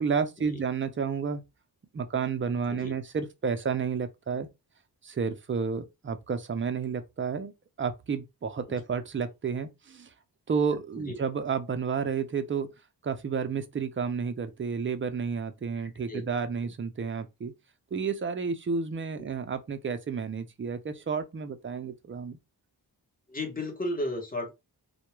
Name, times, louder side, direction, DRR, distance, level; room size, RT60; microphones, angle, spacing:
voice 1, 0.0-1.4 1.9-4.5 5.0-7.5 7.8-10.1 10.5-12.7 13.0-17.5 17.9-22.4, right 6 dB, 30° right, 0.4 m, -31 dB
voice 2, 23.3-24.5, left 1 dB, 20° left, 0.9 m, -33 dB
2.2 x 2.1 x 3.0 m
wide cardioid pair, 90°, 40 cm